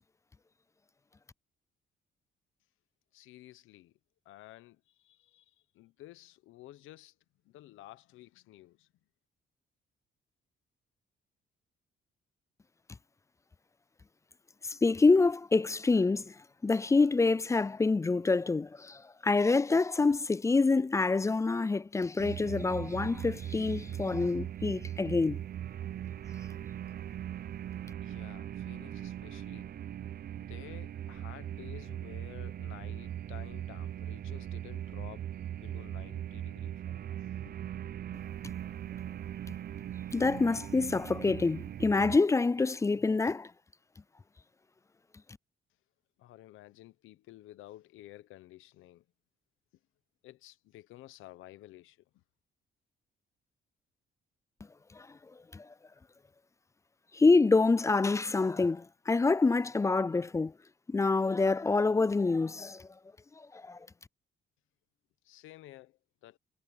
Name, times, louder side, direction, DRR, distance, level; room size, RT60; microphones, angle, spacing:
voice 1, 3.1-3.9 4.2-7.1 7.4-8.9 28.0-29.7 30.4-37.6 46.2-49.0 50.2-52.0 65.2-66.4, left 15 dB, 90° left, 1.0 m, -52 dB
voice 2, 14.6-16.3 16.6-25.4 38.4-38.5 40.1-43.5 54.9-55.2 55.5-55.7 57.1-60.5 60.9-62.9 63.4-63.9, left 3 dB, 15° left, 0.3 m, -27 dB
sound 1, 22.2-42.2, right 11 dB, 50° right, 0.6 m, -40 dB
cardioid pair, 90°, 20 cm